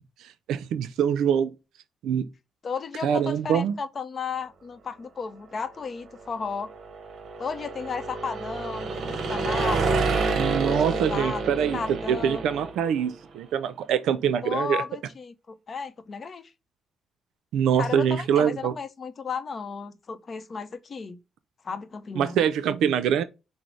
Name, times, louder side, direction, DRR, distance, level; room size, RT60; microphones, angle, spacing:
voice 1, 0.5-1.5 2.0-2.3 3.0-3.8 10.3-14.8 17.5-18.7 22.2-23.2, right 8 dB, 85° right, 0.4 m, -24 dB
voice 2, 2.6-6.7 7.4-12.4 14.4-16.5 17.8-21.2 21.6-22.4, left 5 dB, 40° left, 0.6 m, -34 dB
sound 1, 6.2-13.1, right 4 dB, 60° right, 0.9 m, -29 dB
6.0 x 2.0 x 3.1 m
cardioid pair, 90°, 0 cm